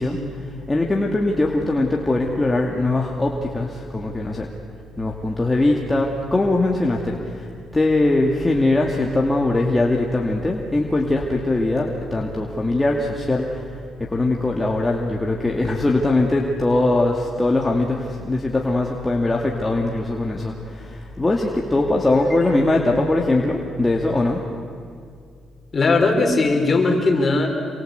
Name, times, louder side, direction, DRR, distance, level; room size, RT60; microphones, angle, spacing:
voice 1, 0.0-4.5 5.0-7.5 7.7-13.7 14.0-24.4, left 2 dB, 15° left, -1 dB, 2.4 m, -21 dB
voice 2, 25.7-27.5, left 3 dB, 35° left, 3 dB, 4.8 m, -18 dB
27.5 x 23.0 x 8.2 m, 2.2 s
cardioid pair, 90°, 0 cm